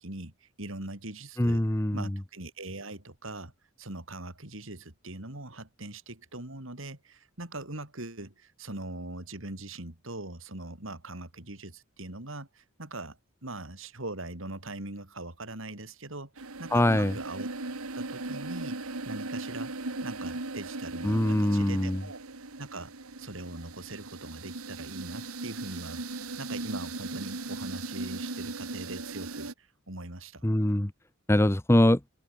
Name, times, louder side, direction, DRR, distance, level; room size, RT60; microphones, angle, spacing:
voice 1, 0.0-1.6 1.9-3.5 3.8-17.5 17.9-22.2 22.6-26.0 26.4-30.4, right 2 dB, 60° right, 3.7 m, -41 dB
voice 2, 1.4-2.0 16.7-17.1 21.0-22.0 30.4-30.9 31.3-32.0, left 1 dB, 10° left, 0.8 m, -23 dB
sound 1, 16.4-29.5, right 2 dB, 80° right, 2.1 m, -38 dB
open air
head